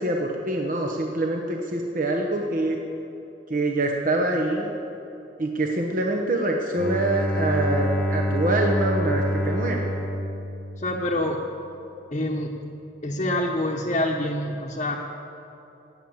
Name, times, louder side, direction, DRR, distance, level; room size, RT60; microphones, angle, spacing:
voice 1, 0.0-2.8 3.5-4.7 5.4-9.9, right 2 dB, 45° right, 1 dB, 1.0 m, -25 dB
Bowed string instrument, 6.7-11.4, equal, 10° left, 0.8 m, -27 dB
voice 2, 10.8-11.4 12.1-12.6 13.0-15.0, left 1 dB, 35° left, -2 dB, 1.0 m, -26 dB
19.0 x 7.8 x 7.3 m, 3.0 s
head